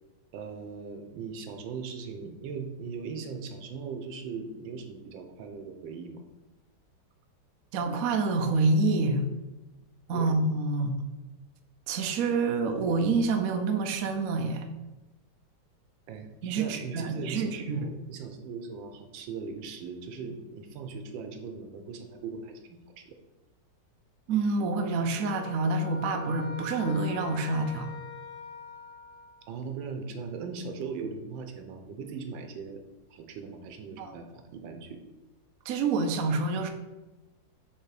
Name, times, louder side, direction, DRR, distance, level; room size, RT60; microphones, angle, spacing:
voice 1, 0.3-6.2 10.1-10.3 16.1-16.3 16.6-23.2 29.5-32.8 33.1-35.0, right 5 dB, 90° right, 6 dB, 1.5 m, -39 dB
voice 2, 7.7-9.3 10.1-10.9 11.9-14.7 16.4-17.9 24.3-27.9 34.0-34.1 35.7-36.7, right 3 dB, 65° right, 5 dB, 0.9 m, -27 dB
sound 1, 25.2-29.6, left 2 dB, 85° left, 2.2 m, -43 dB
5.7 x 3.4 x 4.8 m, 1.1 s
omnidirectional pair, 2.0 m